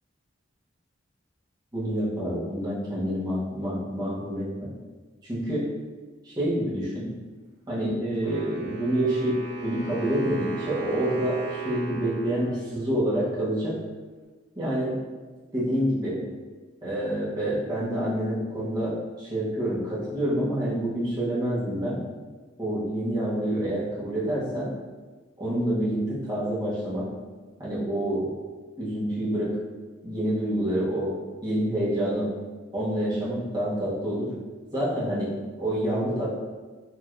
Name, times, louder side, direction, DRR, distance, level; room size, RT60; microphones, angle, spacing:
voice 1, 1.7-4.7 5.2-5.7 6.2-7.1 7.7-13.8 14.5-15.0 15.5-16.2 16.8-22.1 22.6-24.7 25.4-27.1 27.6-28.3 28.8-29.6 30.0-31.2 31.4-32.3 32.7-34.3 34.7-36.3, right 1 dB, 20° right, -9 dB, 1.1 m, -27 dB
Wind instrument woodwind instrument, 8.2-13.2, right 4 dB, 80° right, 1.2 m, -37 dB
4.6 x 2.9 x 2.5 m, 1.3 s
head